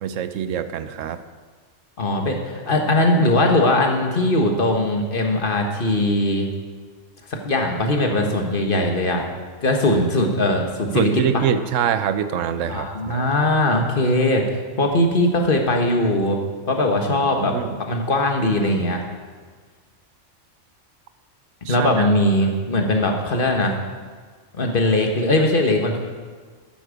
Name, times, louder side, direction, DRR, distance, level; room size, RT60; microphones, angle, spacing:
voice 1, 0.0-1.2 10.9-13.2 17.0-17.8 21.6-22.1, right 9 dB, 85° right, 11 dB, 1.0 m, -25 dB
voice 2, 2.0-6.5 7.3-9.2 9.6-11.4 12.7-16.4 16.7-17.5 17.9-19.0 21.7-23.8 24.5-26.0, left 1 dB, 45° left, 3 dB, 1.5 m, -20 dB
12.0 x 9.0 x 5.1 m, 1.5 s
omnidirectional pair, 1.3 m